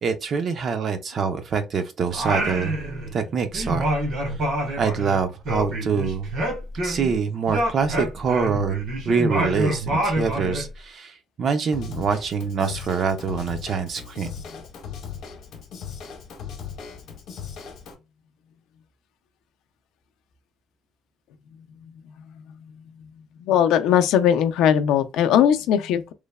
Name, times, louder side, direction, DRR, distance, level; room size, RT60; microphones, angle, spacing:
voice 1, 0.0-2.8 3.1-3.9 4.8-6.3 6.8-8.8 9.1-14.3, right 6 dB, 40° right, 0.4 m, -25 dB
Singing, 2.1-3.3 3.5-7.2 7.5-10.7, right 1 dB, 60° right, 1.1 m, -27 dB
Drum kit / Drum, 11.7-17.9, left 7 dB, 60° left, 0.8 m, -38 dB
voice 2, 23.4-26.1, left 9 dB, 80° left, 0.4 m, -19 dB
3.1 x 2.0 x 2.2 m
cardioid pair, 165°, 0 cm